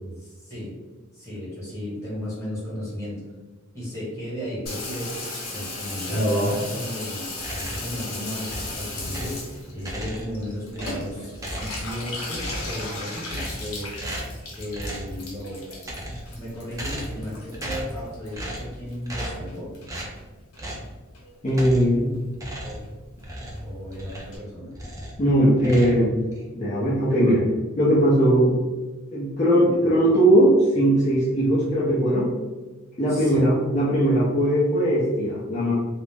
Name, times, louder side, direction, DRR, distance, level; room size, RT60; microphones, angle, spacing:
voice 1, 0.2-0.7 1.1-3.2 3.7-5.1 5.5-13.9 14.5-15.6 16.4-19.7 22.6-22.8 23.6-24.7 33.1-33.4, equal, 15° left, -8 dB, 1.1 m, -35 dB
Water tap faucet / Bathtub (filling or washing), 4.7-19.2 19.5-20.2 20.5-20.6 20.8-20.9 21.1-21.5 21.8-21.9 22.1-22.2 22.5-22.6 22.8-22.9 23.2-23.3 23.6-23.7 23.9-24.0 24.3-24.4, left 1 dB, 85° left, 0.8 m, -33 dB
sound 1, 7.4-8.0 8.5-9.5 9.8-10.4 10.7-12.0 12.3-12.8 13.3-13.7 14.0-14.4 14.7-15.2 15.7-16.3 16.7-17.3 17.5-18.0 18.3-18.7 19.1-19.5 19.9-20.1 20.6-20.9 21.5-22.0 22.3-24.4 24.7-25.2 25.6-26.4, right 1 dB, 15° right, 0.5 m, -35 dB
voice 2, 21.4-22.1 25.2-26.2 26.5-27.5 27.8-28.6 29.1-32.3 33.0-35.7, right 1 dB, 35° left, -10 dB, 0.6 m, -19 dB
2.4 x 2.0 x 3.4 m, 1.2 s
head